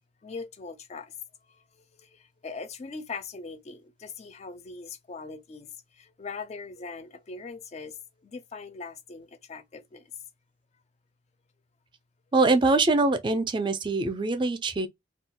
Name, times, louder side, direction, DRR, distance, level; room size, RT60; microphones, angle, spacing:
voice 1, 0.2-1.1 1.5-10.0, left 4 dB, 35° left, 0.4 m, -41 dB
voice 2, 12.3-14.9, right 3 dB, 25° right, 0.4 m, -23 dB
2.3 x 2.1 x 3.6 m
head